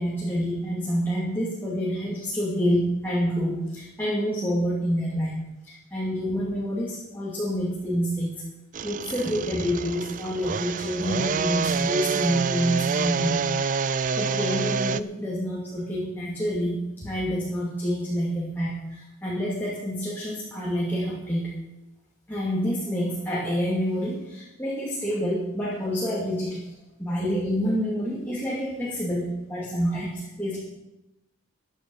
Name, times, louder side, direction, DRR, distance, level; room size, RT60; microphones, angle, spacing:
voice 1, 0.0-8.4 8.8-13.4 14.2-21.5 22.3-26.6 27.0-30.6, equal, 10° left, -6 dB, 2.7 m, -27 dB
sound 1, 8.7-15.0, right 5 dB, 35° right, 0.4 m, -27 dB
15.0 x 9.9 x 5.6 m, 0.92 s
head